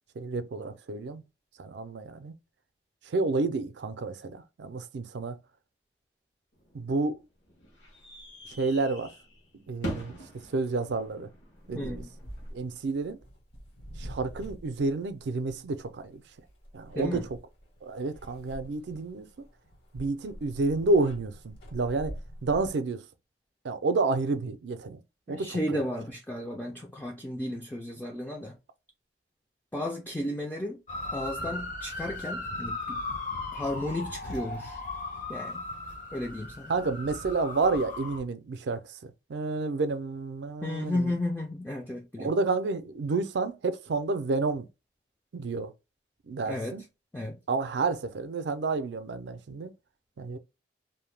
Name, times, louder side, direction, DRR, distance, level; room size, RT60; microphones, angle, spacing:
voice 1, 0.2-1.2 1.6-2.3 3.1-5.4 6.7-7.2 8.5-9.1 9.5-10.2 10.5-11.3 11.7-12.0 12.5-13.2 14.0-16.2 16.7-17.2 17.8-19.5 19.9-23.0 23.6-25.0 25.3-25.6 36.7-41.0 42.2-44.7 45.3-45.7 46.3-46.8 47.5-49.7 50.2-50.4, right 3 dB, 70° right, 0.4 m, -30 dB
sound 1, 6.5-12.5, equal, 80° left, 1.2 m, -43 dB
voice 2, 11.7-12.1 16.9-17.2 25.3-28.6 29.7-30.8 31.1-33.2 33.5-34.8 35.3-35.7 36.1-36.7 40.6-42.3 46.4-46.8 47.1-47.4, left 1 dB, 10° left, 0.3 m, -33 dB
sound 2, 11.8-22.7, equal, 65° left, 1.4 m, -46 dB
sound 3, 30.9-38.2, left 2 dB, 45° left, 0.7 m, -37 dB
2.6 x 2.1 x 3.2 m
head